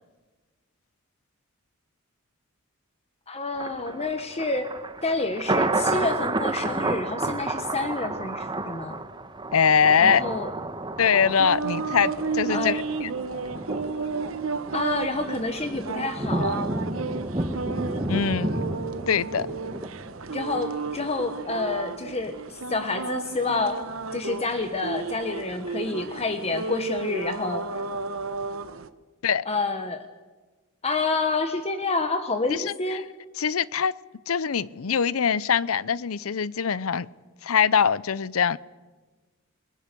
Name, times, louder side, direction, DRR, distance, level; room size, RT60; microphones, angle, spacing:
voice 1, 3.3-4.7 5.0-9.0 10.0-10.5 12.5-12.8 14.7-16.6 20.3-23.8 24.1-27.8 29.4-30.0 30.8-33.0, left 3 dB, 30° left, 1.2 m, -28 dB
Thunder, 3.6-20.7 21.0-21.1, right 2 dB, 20° right, 1.2 m, -31 dB
voice 2, 9.5-10.2 11.0-13.1 18.1-18.6 19.1-19.5 29.2-29.4 32.5-33.0 33.4-33.9 34.3-37.1 37.4-38.6, left 7 dB, 85° left, 0.7 m, -23 dB
sound 1, 11.3-28.9, right 4 dB, 70° right, 1.1 m, -33 dB
29.0 x 20.5 x 6.8 m
head